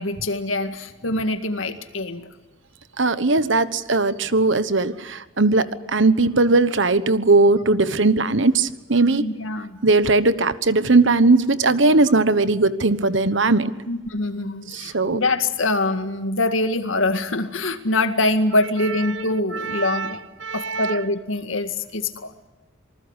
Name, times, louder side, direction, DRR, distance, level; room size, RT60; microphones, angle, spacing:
voice 1, 0.0-2.3 5.5-5.6 9.2-9.8 13.9-20.2 20.5-22.3, left 2 dB, 80° left, 8 dB, 2.1 m, -24 dB
voice 2, 3.0-9.3 9.8-13.7 14.7-15.2 19.5-20.1 20.4-21.0, right 3 dB, 65° right, 14 dB, 1.2 m, -19 dB
27.0 x 20.0 x 8.2 m, 1.1 s
head